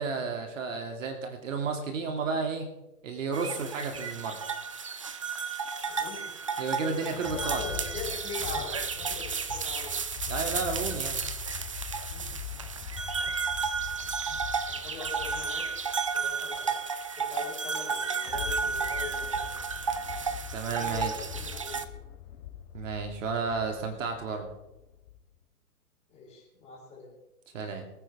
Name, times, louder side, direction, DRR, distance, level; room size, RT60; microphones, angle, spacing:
voice 1, 0.0-2.7 3.0-4.4 6.6-7.7 10.3-11.2 20.5-21.3 22.7-24.5 27.5-27.9, right 4 dB, 55° right, 4 dB, 2.5 m, -32 dB
sound 1, 3.3-21.8, right 5 dB, 25° right, 0.4 m, -33 dB
voice 2, 5.8-6.3 7.0-9.3 9.6-9.9 12.1-12.3 14.6-15.7 16.1-16.8 17.1-19.4 20.7-21.8 26.1-27.1, left 5 dB, 15° left, -4 dB, 5.3 m, -42 dB
sound 2, 6.3-6.4 6.9-16.6 17.9-25.2, left 11 dB, 35° left, 3.0 m, -42 dB
23.5 x 9.8 x 3.5 m, 0.95 s
hypercardioid pair, 130°, 45 cm